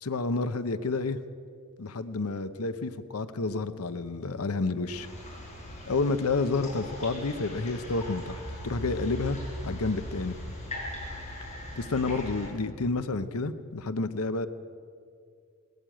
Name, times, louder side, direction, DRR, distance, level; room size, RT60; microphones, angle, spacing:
voice 1, 0.0-1.2 1.8-5.1 5.9-9.4 9.6-10.4 11.8-14.5, left 3 dB, 90° left, 11 dB, 0.8 m, -30 dB
sound 1, 4.9-12.5, left 1 dB, 30° left, 6.7 m, -39 dB
20.0 x 16.0 x 9.1 m, 2.3 s
head